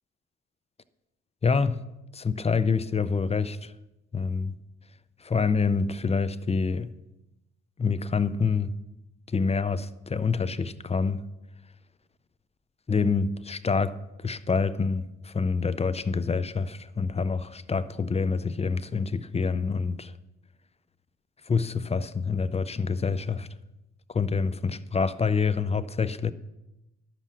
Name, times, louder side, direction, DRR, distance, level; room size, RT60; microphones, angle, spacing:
voice 1, 1.4-1.8 2.1-3.7 4.1-4.6 5.2-6.9 7.8-8.7 9.3-11.2 12.9-14.0 14.2-20.1 21.5-23.5 24.1-26.3, left 5 dB, 20° left, 0.5 m, -26 dB
11.5 x 7.5 x 6.3 m
cardioid pair, 90°, 30 cm